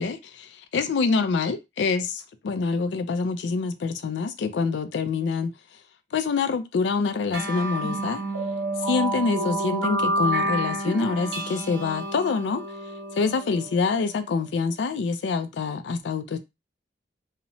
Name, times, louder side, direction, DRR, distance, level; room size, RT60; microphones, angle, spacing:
voice 1, 0.0-5.5 6.1-8.2 8.9-12.6 13.1-16.4, left 4 dB, 70° left, 0.4 m, -26 dB
sound 1, 7.3-14.2, right 1 dB, 80° right, 0.7 m, -29 dB
2.9 x 2.1 x 2.6 m
head